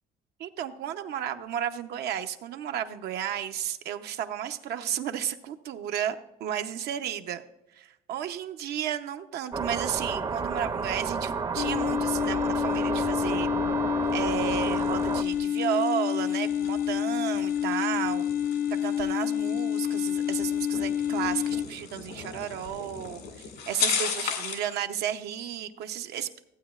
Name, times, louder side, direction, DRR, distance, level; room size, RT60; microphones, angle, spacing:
voice 1, 0.4-7.4 7.7-13.5 14.1-18.3 18.8-26.4, right 10 dB, 75° right, 8 dB, 0.7 m, -33 dB
sound 1, 9.5-15.2, right 5 dB, 25° right, 0.5 m, -31 dB
sound 2, 11.6-21.7, left 9 dB, 60° left, 0.4 m, -28 dB
sound 3, 14.0-24.7, left 6 dB, 80° left, 1.9 m, -37 dB
15.0 x 8.6 x 2.4 m, 0.89 s
cardioid pair, 110°, 17 cm